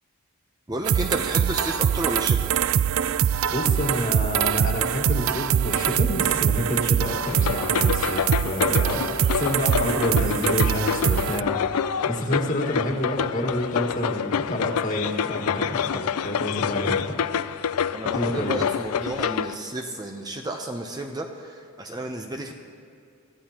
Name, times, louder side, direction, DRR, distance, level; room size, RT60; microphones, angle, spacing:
voice 1, 0.7-2.5 17.9-22.5, right 1 dB, 20° right, 3 dB, 0.7 m, -32 dB
sound 1, 0.9-11.4, right 9 dB, 65° right, 0.3 m, -23 dB
voice 2, 3.5-11.6 12.1-17.0 18.1-18.5, left 1 dB, 35° left, 0 dB, 1.8 m, -28 dB
sound 2, 7.3-19.5, left 7 dB, 90° left, 0.4 m, -27 dB
24.0 x 14.5 x 3.0 m, 2.4 s
head